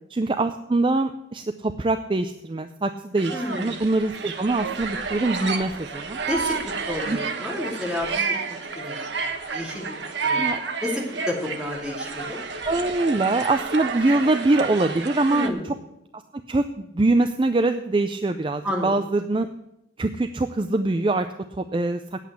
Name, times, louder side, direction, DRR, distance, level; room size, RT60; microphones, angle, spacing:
voice 1, 0.1-6.2 7.1-7.2 10.4-10.6 12.7-15.7 16.1-16.2 16.5-19.5 20.0-21.3 21.6-22.0, right 2 dB, 25° right, 8 dB, 0.4 m, -23 dB
sound 1, 3.2-15.5, right 4 dB, 75° right, 1.2 m, -30 dB
voice 2, 3.3-3.8 6.3-8.3 8.7-9.1 9.5-9.9 10.2-10.4 10.8-12.4 15.3-15.7 18.6-18.9, left 1 dB, 5° right, -3 dB, 2.9 m, -30 dB
9.3 x 8.2 x 8.2 m, 0.85 s
head